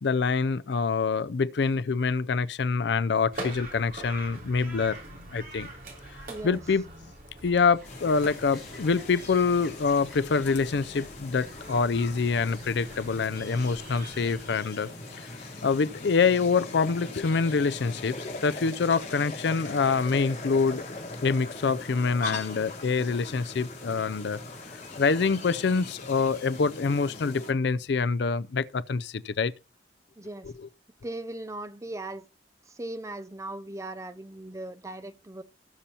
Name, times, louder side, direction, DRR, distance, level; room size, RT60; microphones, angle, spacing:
voice 1, 0.0-5.0 5.3-5.7 6.4-6.8 7.4-15.2 15.6-20.8 21.2-24.4 25.0-29.5, left 5 dB, 65° left, 0.5 m, -26 dB
sound 1, 3.3-14.5, right 1 dB, 50° right, 3.3 m, -44 dB
voice 2, 6.3-6.6 30.2-30.5 31.0-32.3 32.7-35.4, right 2 dB, 15° right, 0.5 m, -38 dB
sound 2, 7.7-26.6, left 2 dB, ahead, 4.7 m, -55 dB
sound 3, 7.8-27.5, left 2 dB, 45° left, 3.5 m, -41 dB
18.5 x 6.9 x 2.9 m
head